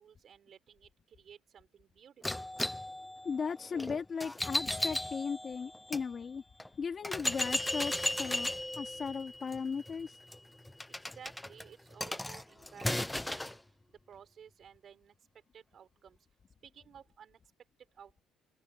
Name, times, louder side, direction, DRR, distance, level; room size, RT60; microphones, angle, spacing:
voice 1, 0.0-2.5 10.9-13.6 13.9-16.2 16.6-17.4 17.8-18.2, right 8 dB, 40° right, 5.4 m, -55 dB
sound 1, 2.2-6.0 6.6-6.7 7.0-13.6, left 1 dB, 5° left, 0.5 m, -36 dB
voice 2, 3.2-6.4 6.7-8.5 8.8-10.2, left 5 dB, 30° left, 2.7 m, -37 dB
cardioid pair, 150°, 0 cm